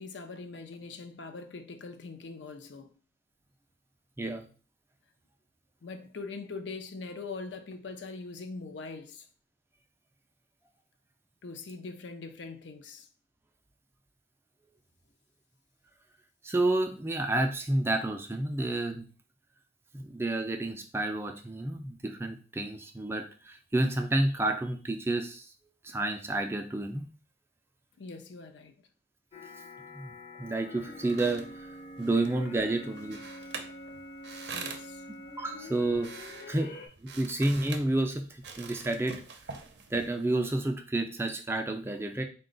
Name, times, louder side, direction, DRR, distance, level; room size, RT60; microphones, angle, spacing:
voice 1, 0.0-2.9 5.8-9.3 11.4-13.1 28.0-28.9 34.5-35.0, left 4 dB, 85° left, 0.5 m, -42 dB
voice 2, 16.4-19.0 19.9-25.5 25.8-27.1 29.9-30.1 30.4-31.7 32.0-33.2 35.4-36.1 36.5-36.7 37.0-39.2 39.9-42.2, right 2 dB, 15° right, 0.3 m, -30 dB
sound 1, 29.3-36.9, left 1 dB, 40° left, 0.6 m, -46 dB
sound 2, 30.8-40.5, right 5 dB, 75° right, 0.6 m, -46 dB
4.0 x 2.2 x 3.8 m
head